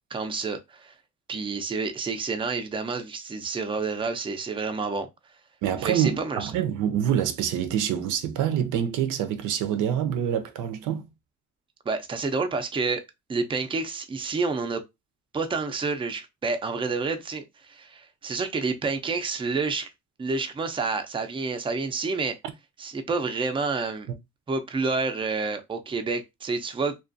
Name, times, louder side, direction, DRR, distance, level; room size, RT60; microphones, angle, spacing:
voice 1, 0.1-0.9 1.3-5.1 5.8-6.5 11.9-13.0 13.3-14.8 15.3-19.9 20.2-22.4 22.8-24.1 24.5-27.0, right 4 dB, 15° right, 0.4 m, -29 dB
voice 2, 5.6-11.0, right 9 dB, 90° right, 0.5 m, -26 dB
2.4 x 2.3 x 2.5 m
cardioid pair, 90°, 30 cm